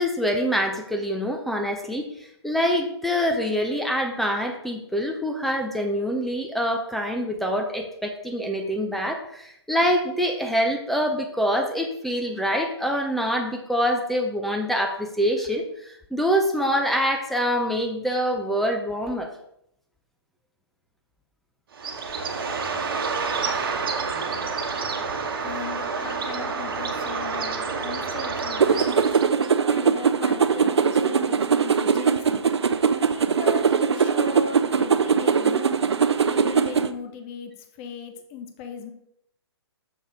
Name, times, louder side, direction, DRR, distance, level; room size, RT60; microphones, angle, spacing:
voice 1, 0.0-2.1 2.4-19.3, equal, ahead, 3 dB, 0.6 m, -25 dB
Bird, 21.7-29.5, right 4 dB, 55° right, 1.2 m, -29 dB
voice 2, 25.4-29.0 29.7-32.5 33.1-35.7 36.2-37.5 37.8-38.9, left 6 dB, 30° left, 6 dB, 1.0 m, -38 dB
sound 1, 28.6-36.9, right 6 dB, 70° right, 0.6 m, -21 dB
6.7 x 5.5 x 4.8 m, 0.75 s
figure-of-eight pair, 130°, 14 cm